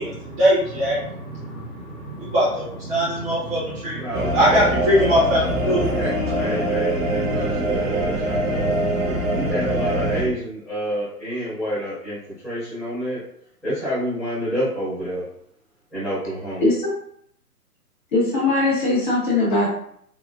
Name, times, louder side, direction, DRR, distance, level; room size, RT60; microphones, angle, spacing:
voice 1, 0.0-5.8 6.5-6.6, equal, 20° right, -8 dB, 0.9 m, -22 dB
voice 2, 3.9-4.7 5.5-6.1 6.4-8.7 9.0-12.2 12.4-13.2 13.6-15.2 15.9-16.6, equal, ahead, -20 dB, 0.5 m, -28 dB
sound 1, 4.1-10.2, right 1 dB, 50° right, 1.2 m, -23 dB
voice 3, 16.6-16.9 18.1-19.7, left 2 dB, 30° left, -5 dB, 0.8 m, -20 dB
3.7 x 2.0 x 2.4 m, 0.68 s
figure-of-eight pair, 130°, 47 cm